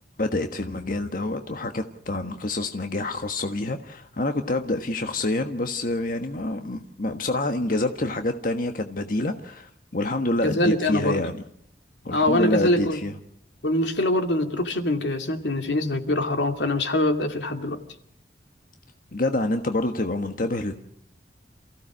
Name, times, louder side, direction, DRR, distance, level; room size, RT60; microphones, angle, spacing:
voice 1, 0.2-11.4 12.0-13.2 19.1-20.7, left 2 dB, 50° left, 6 dB, 1.4 m, -27 dB
voice 2, 10.4-11.2 12.1-13.0 13.6-17.8, left 1 dB, 90° left, 6 dB, 2.6 m, -24 dB
28.0 x 16.0 x 6.3 m, 0.71 s
head